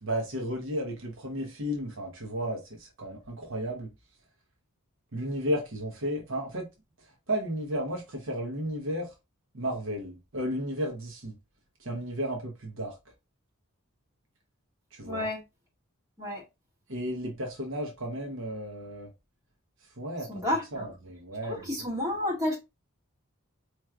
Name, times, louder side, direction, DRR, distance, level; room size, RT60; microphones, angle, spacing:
voice 1, 0.0-3.9 5.1-6.7 7.0-9.1 9.5-11.4 11.8-12.9 14.9-15.3 16.9-19.1 20.0-20.4 20.7-21.7, equal, 65° right, 1.0 m, -33 dB
voice 2, 15.0-15.4 16.2-16.4 20.3-20.9 21.4-22.6, left 1 dB, 15° right, 2.0 m, -30 dB
4.5 x 3.2 x 2.4 m
head